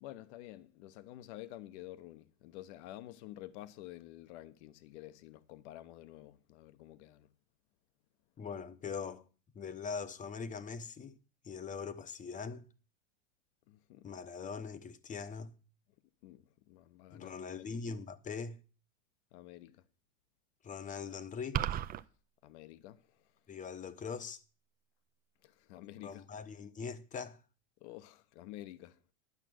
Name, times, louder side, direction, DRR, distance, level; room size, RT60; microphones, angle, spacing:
voice 1, 0.0-7.3 13.7-14.1 16.2-17.7 19.3-19.8 22.4-23.0 25.4-26.2 27.8-29.0, left 15 dB, 65° left, 1.0 m, -50 dB
voice 2, 8.4-9.2 9.5-11.2 11.4-12.6 14.0-15.5 17.1-18.6 20.6-21.6 23.5-24.4 26.0-27.4, left 5 dB, 20° left, 0.9 m, -42 dB
sound 1, 21.5-22.0, right 11 dB, 25° right, 0.5 m, -33 dB
11.0 x 6.1 x 7.7 m
supercardioid pair, 125°, 37 cm